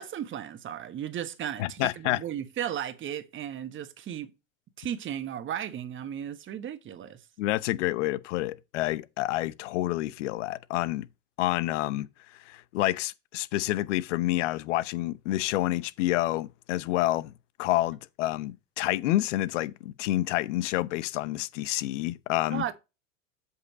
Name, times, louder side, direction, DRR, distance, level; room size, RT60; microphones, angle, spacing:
voice 1, 0.0-4.3 4.8-7.2 22.5-22.7, right 10 dB, 30° right, 1.3 m, -35 dB
voice 2, 1.6-2.2 7.4-11.1 11.4-12.1 12.5-17.3 17.6-22.6, left 16 dB, 65° left, 0.8 m, -28 dB
7.9 x 5.6 x 4.2 m
hypercardioid pair, 95°, 39 cm